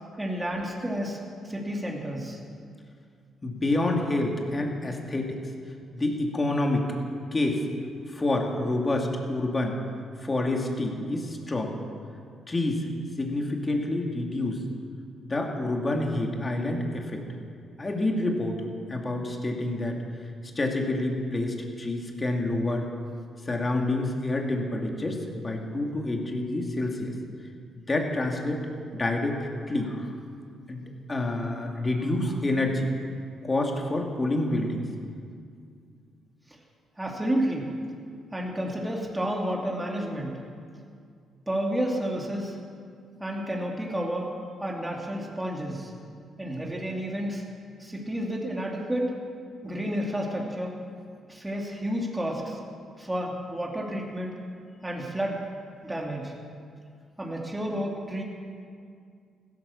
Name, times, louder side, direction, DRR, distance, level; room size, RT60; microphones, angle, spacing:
voice 1, 0.2-2.4 37.0-37.8 38.3-40.4 41.5-42.6 43.2-45.9 46.4-47.4 47.8-49.2 49.6-50.7 51.3-52.6 53.0-54.3 54.8-55.4 55.8-56.4 57.2-58.2, equal, 10° right, -1 dB, 2.5 m, -31 dB
voice 2, 3.4-5.4 5.9-7.0 7.3-7.6 8.1-9.8 10.2-11.8 12.5-12.9 13.2-14.6 15.2-17.2 17.8-18.6 18.9-20.0 20.6-22.9 23.4-27.1 27.7-28.6 29.0-30.1 30.7-30.8 31.1-32.9 33.4-34.9, left 2 dB, 25° left, 1 dB, 2.7 m, -28 dB
15.5 x 12.0 x 7.2 m, 2.3 s
cardioid pair, 90°, 0 cm